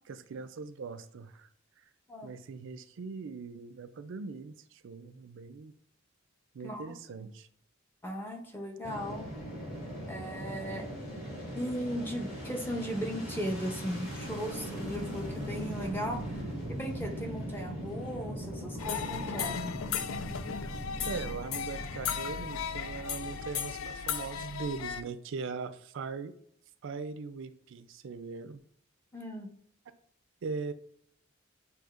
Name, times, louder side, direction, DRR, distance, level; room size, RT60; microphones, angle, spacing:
voice 1, 0.1-1.5 2.2-5.7 6.5-7.5 21.0-26.3 26.8-28.6 30.4-30.7, right 4 dB, 65° right, 12 dB, 0.4 m, -40 dB
voice 2, 8.0-9.3 10.1-10.9 11.6-19.6 29.1-29.5, equal, 10° left, 2 dB, 0.6 m, -37 dB
Fixed-wing aircraft airplane, 8.8-24.0, right 1 dB, 45° left, 1.9 m, -40 dB
sound 1, 18.8-25.0, left 7 dB, 85° left, 0.4 m, -36 dB
7.6 x 2.9 x 2.4 m, 0.69 s
head